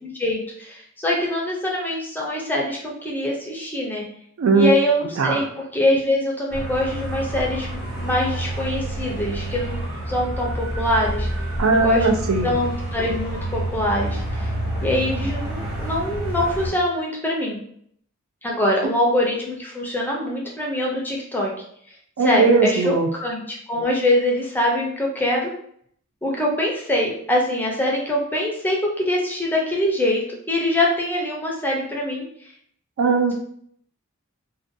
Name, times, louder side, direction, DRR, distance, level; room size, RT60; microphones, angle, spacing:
voice 1, 0.0-4.0 4.5-7.7 7.9-9.7 10.1-11.3 11.6-12.1 12.4-14.5 14.8-17.6 18.4-21.5 22.2-25.5 26.2-30.2 30.5-32.2, left 1 dB, 10° left, -2 dB, 0.4 m, -23 dB
voice 2, 4.4-4.7 5.2-5.4 11.6-12.5 22.2-23.1 33.0-33.3, right 4 dB, 70° right, 5 dB, 0.3 m, -18 dB
sound 1, 6.5-16.7, right 1 dB, 25° right, 1.1 m, -28 dB
2.5 x 2.2 x 2.5 m, 0.67 s
head